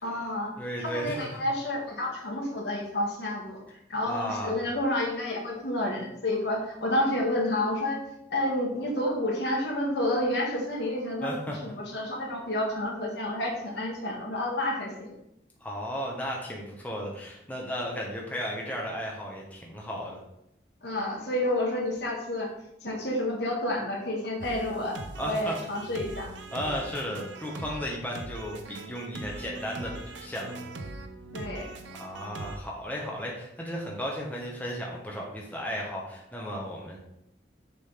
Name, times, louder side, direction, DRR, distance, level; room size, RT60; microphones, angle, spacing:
voice 1, 0.0-0.5 0.8-8.0 8.3-11.3 11.6-15.1 20.8-22.5 22.8-25.0 25.2-26.3 31.3-31.7, left 1 dB, 70° left, 0 dB, 1.7 m, -30 dB
voice 2, 0.6-1.2 4.1-4.7 11.2-11.6 15.6-20.2 25.2-25.5 26.5-30.6 32.0-37.0, equal, 10° left, -2 dB, 1.1 m, -34 dB
sound 1, 24.4-32.6, right 2 dB, 85° right, 0.7 m, -41 dB
6.8 x 4.0 x 5.1 m, 0.81 s
head